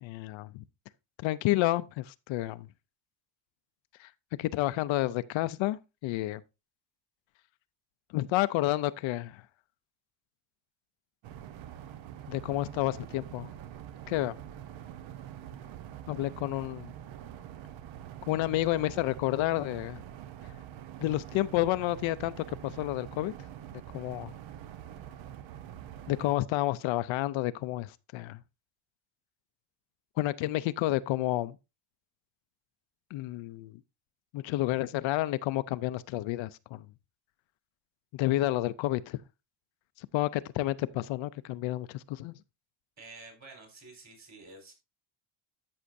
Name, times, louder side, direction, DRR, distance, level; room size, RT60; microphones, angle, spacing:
voice 1, 0.0-0.6 1.2-2.7 4.0-4.1 4.4-6.4 8.1-9.4 12.3-13.5 14.1-14.3 16.1-16.9 18.3-20.0 21.0-22.3 22.6-23.3 23.9-24.3 26.1-28.4 30.2-31.6 33.1-33.8 34.3-36.8 38.1-39.2 40.0-42.3, left 16 dB, 70° left, 0.5 m, -30 dB
sound 1, 11.2-26.3, right 11 dB, 65° right, 0.9 m, -45 dB
voice 2, 43.0-44.7, right 3 dB, 35° right, 4.2 m, -50 dB
13.0 x 6.3 x 2.6 m
cardioid pair, 130°, 49 cm